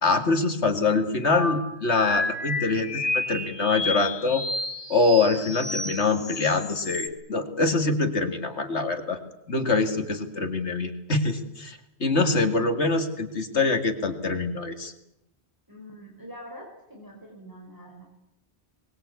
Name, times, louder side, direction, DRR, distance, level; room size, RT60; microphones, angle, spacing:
voice 1, 0.0-4.4 4.9-9.2 9.5-14.9, left 3 dB, 75° left, 6 dB, 2.6 m, -24 dB
sound 1, 1.3-7.1, left 2 dB, 45° left, 3.7 m, -31 dB
voice 2, 15.7-18.1, equal, 15° right, -1 dB, 4.5 m, -44 dB
23.0 x 21.0 x 8.5 m, 0.82 s
omnidirectional pair, 1.2 m